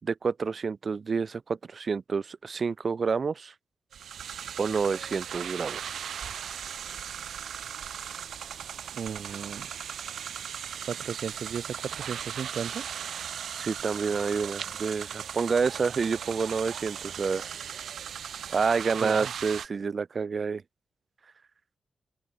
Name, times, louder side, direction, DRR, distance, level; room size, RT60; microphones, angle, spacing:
voice 1, 0.0-3.5 4.6-6.0 13.5-17.5 18.5-20.6, right 5 dB, 45° right, 5.6 m, -28 dB
sound 1, 3.9-19.7, right 8 dB, 85° right, 2.8 m, -38 dB
voice 2, 8.9-9.7 10.9-12.8 19.0-19.3, right 7 dB, 65° right, 6.7 m, -35 dB
open air
wide cardioid pair, 135°, 0 cm